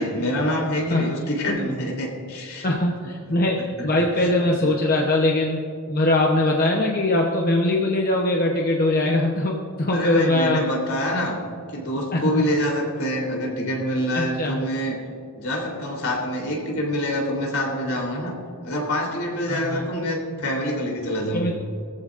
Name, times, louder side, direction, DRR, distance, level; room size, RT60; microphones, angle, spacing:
voice 1, 0.0-2.7 3.6-4.3 9.9-11.4 11.7-15.0 15.4-18.3 18.6-21.5, equal, 70° left, -1 dB, 3.5 m, -26 dB
voice 2, 2.6-5.6 5.9-10.7 12.1-12.5 14.1-14.6 19.5-19.9 21.3-21.5, left 1 dB, 40° left, 0 dB, 0.9 m, -21 dB
20.0 x 14.0 x 2.6 m, 2.4 s
head